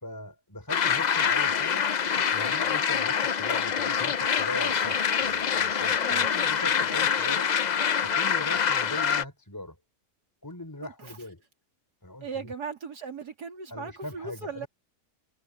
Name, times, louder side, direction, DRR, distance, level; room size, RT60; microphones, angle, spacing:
voice 1, 0.0-1.8 2.3-7.5 8.0-9.8 10.4-11.4 12.0-12.5 13.7-14.7, left 1 dB, 10° left, 3.6 m, -40 dB
sound 1, 0.7-9.2, left 7 dB, 75° left, 0.4 m, -25 dB
voice 2, 6.0-6.4 10.8-11.2 12.2-14.7, right 5 dB, 90° right, 3.4 m, -38 dB
omnidirectional pair, 1.7 m